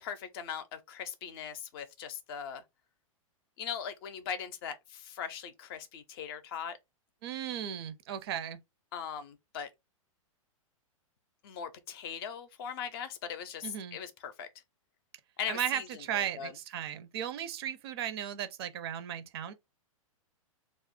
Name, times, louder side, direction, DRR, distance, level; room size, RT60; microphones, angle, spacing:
voice 1, 0.0-2.6 3.6-6.8 8.9-9.7 11.4-14.5 15.4-15.8 16.1-16.5, left 8 dB, 45° left, 0.5 m, -40 dB
voice 2, 7.2-8.6 13.6-14.0 15.5-19.5, right 10 dB, 45° right, 0.5 m, -36 dB
2.4 x 2.0 x 3.5 m
figure-of-eight pair, 100°, 18 cm